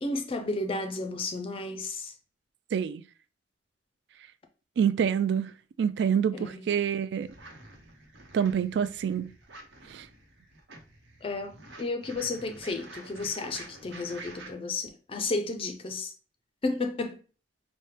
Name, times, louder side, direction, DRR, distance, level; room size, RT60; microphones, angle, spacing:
voice 1, 0.0-2.1 6.3-6.6 11.2-16.1 16.6-17.2, left 3 dB, 30° left, 0.4 m, -32 dB
voice 2, 2.7-3.0 4.8-5.5 5.8-7.3 8.3-9.3 9.9-10.1, right 8 dB, 70° right, 0.3 m, -26 dB
sound 1, 7.2-14.5, right 2 dB, 85° right, 0.9 m, -49 dB
4.3 x 2.1 x 3.2 m
head